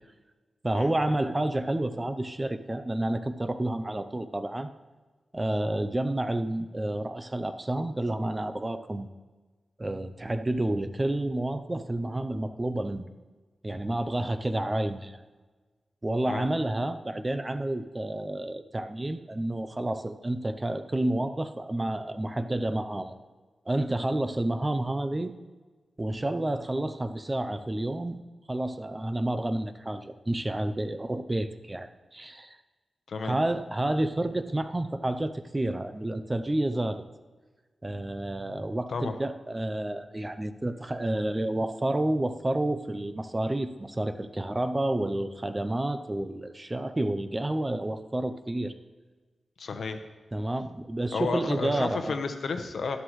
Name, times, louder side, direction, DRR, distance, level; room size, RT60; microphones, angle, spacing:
voice 1, 0.6-4.7 5.3-9.1 9.8-13.0 13.6-15.2 16.0-23.2 23.7-25.3 26.0-28.2 28.5-32.6 33.2-37.0 37.8-48.7 50.3-52.2, right 1 dB, 20° right, 9 dB, 0.6 m, -30 dB
voice 2, 49.6-50.0 51.1-53.0, left 4 dB, 75° left, 7 dB, 1.0 m, -32 dB
12.5 x 11.5 x 3.2 m, 1.3 s
wide cardioid pair, 120°, 0 cm